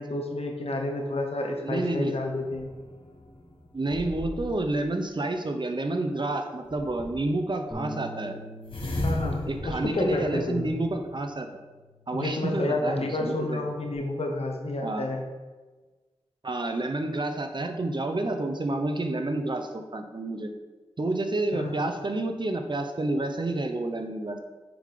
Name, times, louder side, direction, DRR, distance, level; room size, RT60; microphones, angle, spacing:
voice 1, 0.0-2.7 9.0-10.7 12.1-15.2 21.5-21.8, left 2 dB, 65° left, 2 dB, 1.1 m, -30 dB
voice 2, 1.6-2.1 3.7-8.3 9.5-11.5 12.1-13.6 14.8-15.0 16.4-20.5 21.0-24.4, right 2 dB, 45° right, 5 dB, 0.8 m, -29 dB
sound 1, 2.3-4.8 6.7-7.4 8.6-11.1, left 1 dB, 50° left, 1.4 m, -36 dB
Bass guitar, 7.7-12.2 12.6-14.0, equal, 25° left, 1.6 m, -45 dB
6.9 x 3.8 x 5.1 m, 1.3 s
wide cardioid pair, 65°, 11 cm